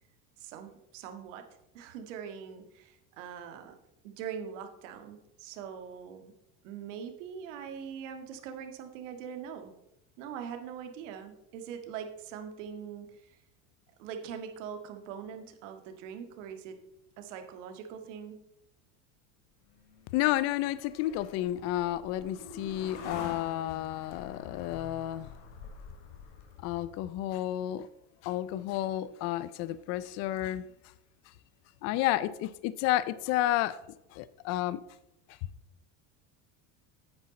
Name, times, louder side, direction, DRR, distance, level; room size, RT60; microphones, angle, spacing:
voice 1, 0.4-1.5 1.7-3.7 4.0-6.3 6.6-9.7 10.2-13.4 14.0-16.8 17.2-18.4, right 7 dB, 80° right, 6 dB, 1.8 m, -42 dB
sound 1, 19.7-27.1, left 4 dB, 80° left, 2.9 m, -47 dB
voice 2, 20.1-25.3 26.6-27.9 28.2-30.6 31.8-33.8 34.1-34.8 35.3-35.4, left 14 dB, 45° left, 16 dB, 0.5 m, -31 dB
9.6 x 8.8 x 4.3 m, 0.84 s
cardioid pair, 155°, 37 cm